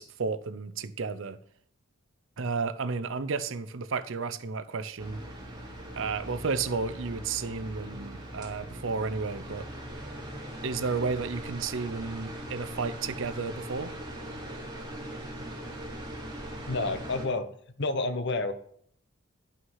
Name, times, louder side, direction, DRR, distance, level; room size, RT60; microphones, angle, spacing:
voice 1, 0.0-1.4 2.4-5.2 6.0-9.7 10.6-13.9, right 4 dB, 65° right, 0.7 m, -32 dB
sound 1, 5.0-17.3, right 1 dB, 20° right, 2.4 m, -40 dB
voice 2, 16.7-17.5 17.8-18.5, left 3 dB, 55° left, 0.9 m, -29 dB
11.5 x 5.8 x 5.6 m
head